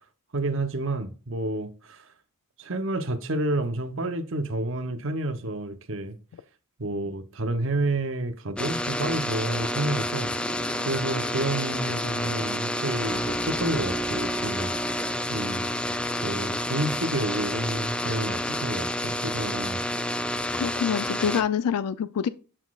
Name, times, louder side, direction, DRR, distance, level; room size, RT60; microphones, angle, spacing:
voice 1, 0.3-2.0 2.6-6.2 6.8-10.3 10.8-14.7 15.3-15.7 16.2-19.8, right 2 dB, 60° right, 0.8 m, -29 dB
sound 1, 8.6-21.4, left 1 dB, 5° left, 0.3 m, -29 dB
sound 2, 8.6-20.9, right 1 dB, 90° right, 3.9 m, -45 dB
voice 2, 20.5-22.3, left 7 dB, 90° left, 0.4 m, -26 dB
12.0 x 4.1 x 2.3 m
head